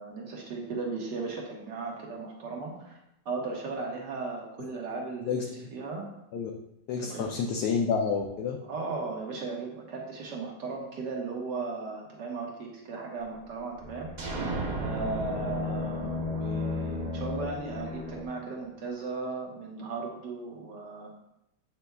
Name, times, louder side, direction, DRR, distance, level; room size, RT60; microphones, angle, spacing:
voice 1, 0.0-2.9 3.3-6.1 7.0-7.3 8.6-14.1 14.8-21.1, right 3 dB, 75° right, -1 dB, 1.9 m, -36 dB
voice 2, 6.9-8.6, left 5 dB, 75° left, 1 dB, 1.2 m, -29 dB
sound 1, 13.8-18.2, left 3 dB, 15° left, 0.3 m, -35 dB
sound 2, 14.2-17.9, right 3 dB, 60° right, 0.4 m, -36 dB
7.8 x 6.0 x 2.3 m, 0.83 s
omnidirectional pair, 1.9 m